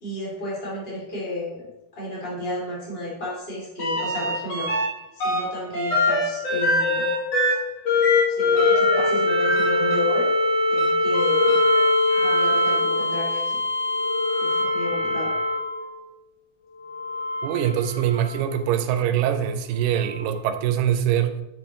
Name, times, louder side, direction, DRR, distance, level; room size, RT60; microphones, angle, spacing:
voice 1, 0.0-1.6 1.9-4.7 5.1-7.0 8.3-10.3 10.7-11.6 12.1-13.6 14.4-15.3, left 1 dB, 20° left, 2.8 m, -32 dB
sound 1, 3.8-4.9 5.2-16.0 16.8-18.4 20.1-20.2, left 2 dB, 55° left, 2.9 m, -22 dB
voice 2, 17.4-21.4, right 10 dB, 90° right, 2.3 m, -23 dB
8.8 x 6.2 x 3.1 m
omnidirectional pair, 3.8 m